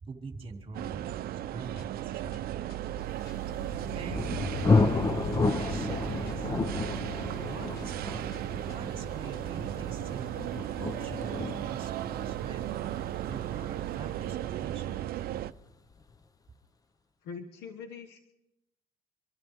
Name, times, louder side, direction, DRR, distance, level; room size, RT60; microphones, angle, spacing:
voice 1, 0.0-1.1 1.3-2.4 3.9-4.3 5.5-6.5 7.4-8.3 8.6-10.3 10.8-12.7 13.2-15.1, right 4 dB, 35° right, 2 dB, 2.7 m, -45 dB
sound 1, 0.7-8.7, left 5 dB, 65° left, 1.9 m, -54 dB
sound 2, 0.7-15.5, right 13 dB, 65° right, 0.6 m, -35 dB
Thunder, 3.3-14.9, left 3 dB, 20° left, 0.6 m, -31 dB
voice 2, 17.2-18.2, left 5 dB, 85° left, 6 dB, 1.2 m, -42 dB
25.0 x 13.0 x 3.6 m, 0.89 s
cardioid pair, 110°, 17 cm